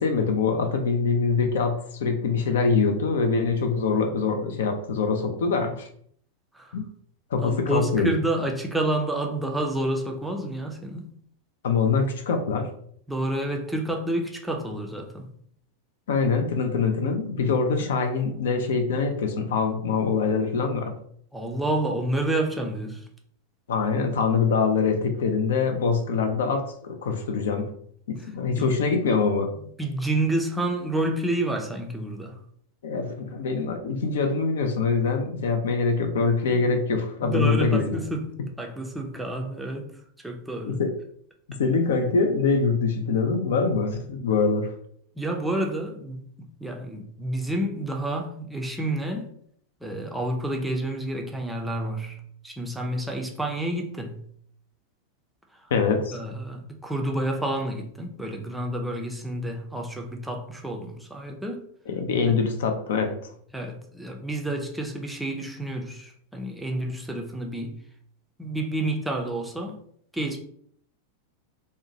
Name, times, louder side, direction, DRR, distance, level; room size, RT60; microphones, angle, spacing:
voice 1, 0.0-5.9 6.7-6.9 7.3-8.1 11.6-12.7 16.1-21.0 23.7-27.7 28.1-29.5 32.8-38.0 40.7-40.9 41.6-44.7 55.7-56.2 61.9-63.3, left 5 dB, 60° left, 5 dB, 0.4 m, -24 dB
voice 2, 7.4-11.1 13.1-15.3 17.8-17.9 21.3-23.1 28.5-28.8 29.8-32.4 36.5-36.6 37.2-39.9 40.2-40.8 45.2-46.2 46.6-49.3 49.8-54.2 55.6-55.7 56.1-61.6 62.3-62.4 63.5-67.8 68.4-69.8 70.1-70.4, right 1 dB, 5° right, 2 dB, 0.4 m, -29 dB
2.7 x 2.1 x 2.7 m, 0.64 s
figure-of-eight pair, 90°, 0 cm